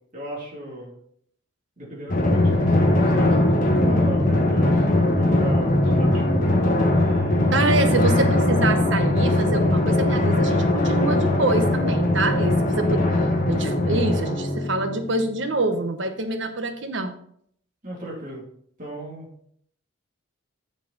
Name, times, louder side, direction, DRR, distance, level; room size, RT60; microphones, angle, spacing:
voice 1, 0.1-0.9 1.8-4.9 5.2-6.2 6.5-6.6 6.9-7.5 12.5-13.0 17.8-18.4 18.8-19.3, right 1 dB, 40° right, -3 dB, 2.8 m, -37 dB
Drum, 2.1-15.2, left 1 dB, 45° left, 1.4 m, -20 dB
voice 2, 7.5-13.0 13.5-17.2, right 2 dB, 65° right, 8 dB, 1.0 m, -25 dB
7.2 x 7.0 x 4.0 m, 0.66 s
head